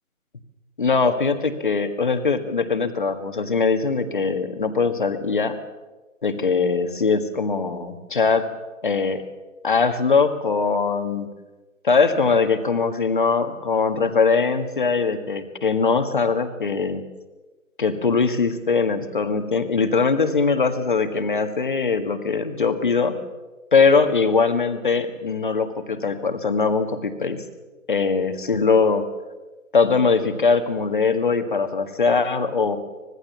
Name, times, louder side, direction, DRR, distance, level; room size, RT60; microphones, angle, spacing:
voice 1, 0.8-5.6 6.2-8.5 8.8-9.2 9.6-11.3 11.8-17.0 17.8-23.1 23.7-27.4 27.9-29.0 29.7-32.8, left 4 dB, 35° left, 8 dB, 1.7 m, -21 dB
25.0 x 20.0 x 7.3 m, 1.2 s
figure-of-eight pair, 170°, 42 cm